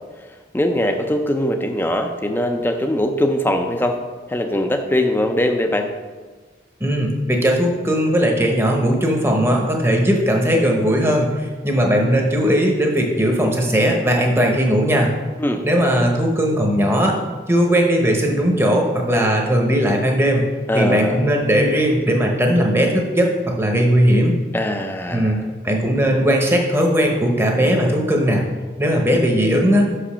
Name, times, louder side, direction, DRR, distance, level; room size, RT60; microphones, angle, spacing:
voice 1, 0.5-4.0 4.3-5.9 15.4-15.6 20.7-21.2 24.5-25.5, left 1 dB, 10° left, 5 dB, 0.5 m, -21 dB
voice 2, 6.8-15.1 15.6-17.1 17.5-20.5 20.7-24.4 25.1-25.4 25.6-28.4 28.8-29.9, equal, 15° right, 1 dB, 0.9 m, -18 dB
6.3 x 5.0 x 5.6 m, 1.4 s
head